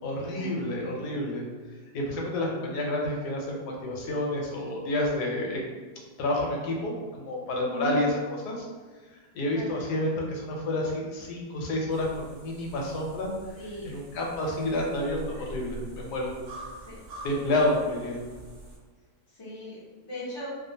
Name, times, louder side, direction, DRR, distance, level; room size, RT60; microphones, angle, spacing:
voice 1, 0.0-1.4 1.9-5.6 6.2-8.1 8.5-8.7 9.3-13.3 13.8-16.3 17.2-18.2, left 1 dB, 80° left, -1 dB, 1.1 m, -29 dB
voice 2, 7.7-8.0 9.5-9.7 13.6-13.9 15.3-15.4 16.9-17.0 19.3-20.5, right 1 dB, 40° left, -7 dB, 0.4 m, -38 dB
sound 1, 11.9-18.8, right 1 dB, 70° right, 0.6 m, -45 dB
2.4 x 2.4 x 2.7 m, 1.4 s
omnidirectional pair, 1.7 m